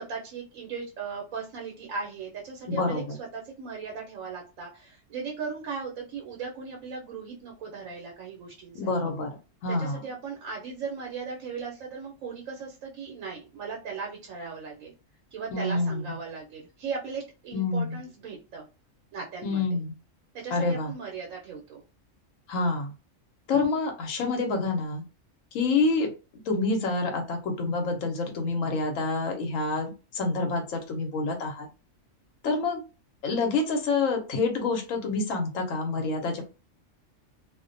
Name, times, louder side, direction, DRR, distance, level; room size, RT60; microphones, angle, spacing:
voice 1, 0.0-3.0 3.3-8.9 9.7-14.9 15.3-18.6 19.1-19.6 20.3-21.8, right 5 dB, 80° right, 0 dB, 1.0 m, -37 dB
voice 2, 2.7-3.2 8.7-9.3 9.6-10.0 15.5-16.2 17.5-18.0 19.4-19.9 20.5-20.9 22.5-22.9 23.5-25.0 25.5-26.1 26.4-31.7 32.4-32.8 33.2-36.4, left 3 dB, 80° left, 3 dB, 1.0 m, -27 dB
2.4 x 2.1 x 2.5 m, 0.31 s
omnidirectional pair, 1.4 m